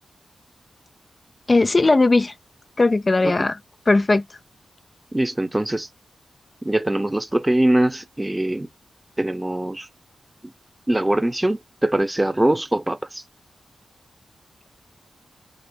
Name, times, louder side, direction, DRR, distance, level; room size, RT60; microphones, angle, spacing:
voice 1, 1.5-2.3 2.8-3.6 3.9-4.2, left 3 dB, 40° left, 0.4 m, -17 dB
voice 2, 5.1-5.9 6.6-8.7 9.2-9.9 10.4-10.5 10.9-13.2, right 1 dB, 20° right, 0.7 m, -22 dB
3.4 x 2.0 x 3.7 m
cardioid pair, 55°, 0 cm